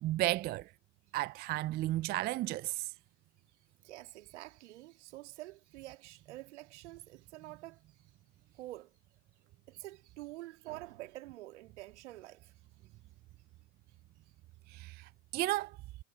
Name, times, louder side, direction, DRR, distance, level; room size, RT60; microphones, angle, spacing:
voice 1, 0.0-0.7 1.1-2.9 14.7-15.8, right 17 dB, 25° right, 0.5 m, -33 dB
voice 2, 3.8-8.0 8.5-8.9 9.7-12.6, right 17 dB, 65° right, 2.1 m, -48 dB
hypercardioid pair, 100°, 37 cm